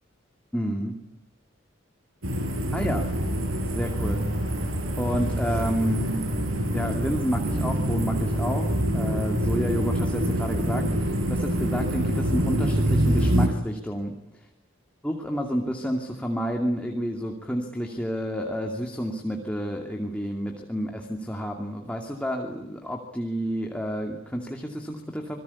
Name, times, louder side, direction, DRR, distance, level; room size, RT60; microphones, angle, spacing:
voice 1, 0.5-0.9 2.7-3.1 3.7-4.3 5.0-6.2 6.7-14.1 15.0-25.4, equal, 5° left, 2 dB, 2.6 m, -30 dB
sound 1, 2.2-13.5, right 1 dB, 80° right, 6.1 m, -25 dB
27.5 x 21.0 x 8.5 m, 0.89 s
head